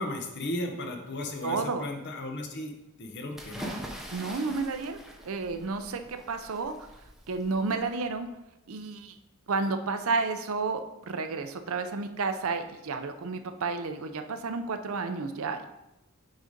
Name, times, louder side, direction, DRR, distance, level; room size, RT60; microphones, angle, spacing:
voice 1, 0.0-2.7 3.0-3.8, left 1 dB, 50° left, 3 dB, 0.9 m, -35 dB
voice 2, 1.4-1.9 4.1-6.7 7.3-8.3 8.7-9.1 9.5-15.7, right 4 dB, 65° right, 8 dB, 0.5 m, -31 dB
sound 1, 3.4-8.2, equal, ahead, 0.7 m, -44 dB
6.4 x 4.1 x 5.0 m, 0.95 s
head